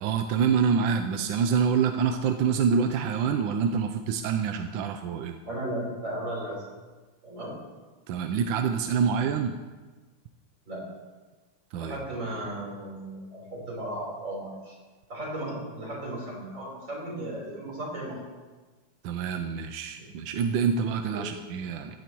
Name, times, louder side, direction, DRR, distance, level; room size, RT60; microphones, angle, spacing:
voice 1, 0.0-5.4 8.1-9.5 11.7-12.0 19.0-22.0, right 6 dB, 75° right, 6 dB, 1.3 m, -26 dB
voice 2, 5.5-6.7 7.2-7.5 10.7-10.9 11.8-14.8 15.1-18.3 20.0-20.1 21.1-21.3, right 1 dB, 55° right, -5 dB, 4.8 m, -35 dB
15.0 x 11.5 x 3.0 m, 1.3 s
omnidirectional pair, 2.4 m